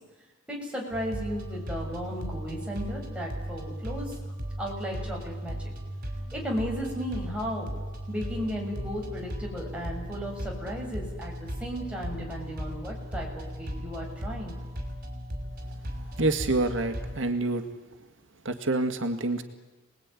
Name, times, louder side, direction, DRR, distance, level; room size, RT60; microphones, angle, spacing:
voice 1, 0.5-4.1 4.6-5.7 6.3-7.7 8.1-14.6, equal, 5° right, -2 dB, 7.0 m, -35 dB
sound 1, 0.9-17.2, equal, 50° right, 6.0 m, -37 dB
voice 2, 15.9-17.7 18.4-19.4, right 2 dB, 80° right, 6 dB, 2.0 m, -27 dB
28.5 x 20.0 x 9.8 m, 1.3 s
head